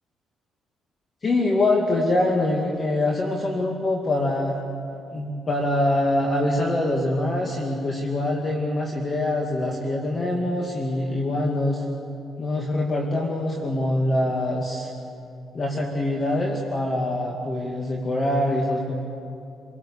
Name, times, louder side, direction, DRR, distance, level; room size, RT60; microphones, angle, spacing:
voice 1, 1.2-4.6 5.1-11.8 12.4-14.9 15.5-18.9, left 1 dB, 35° left, 0 dB, 2.3 m, -24 dB
28.5 x 18.0 x 7.0 m, 2.6 s
cardioid pair, 90°, 0 cm